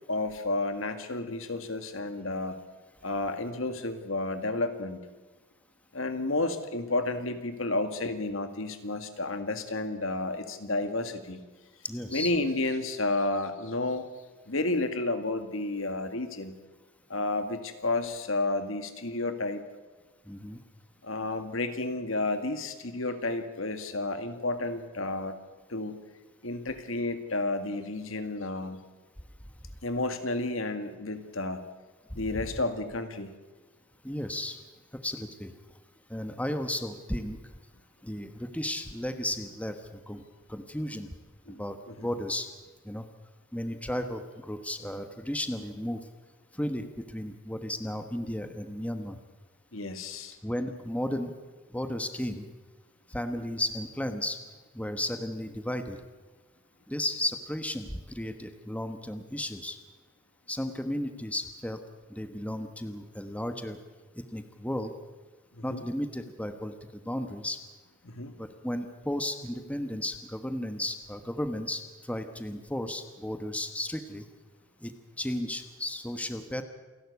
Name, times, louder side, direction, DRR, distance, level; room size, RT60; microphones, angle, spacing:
voice 1, 0.1-2.6 3.0-5.0 5.9-11.4 12.1-14.0 14.5-16.6 17.1-19.6 21.0-25.3 25.7-26.0 26.4-28.8 29.8-31.6 32.1-33.3 41.5-41.6 41.9-42.1 49.7-50.4 65.5-65.8 68.0-68.3, left 2 dB, 70° left, 8 dB, 2.0 m, -31 dB
voice 2, 11.8-12.3 20.3-20.6 32.1-32.4 34.0-34.6 34.9-35.5 36.1-37.4 38.0-40.2 40.5-41.1 41.5-42.5 42.8-43.0 43.5-46.0 46.5-49.2 50.4-51.3 51.7-52.5 53.1-54.4 54.7-56.0 56.9-59.8 60.5-61.8 62.1-63.8 64.2-64.9 65.6-66.7 67.0-67.6 68.4-74.2 74.8-74.9 75.2-76.6, left 1 dB, 5° left, 8 dB, 1.2 m, -34 dB
28.5 x 12.0 x 8.3 m, 1.3 s
head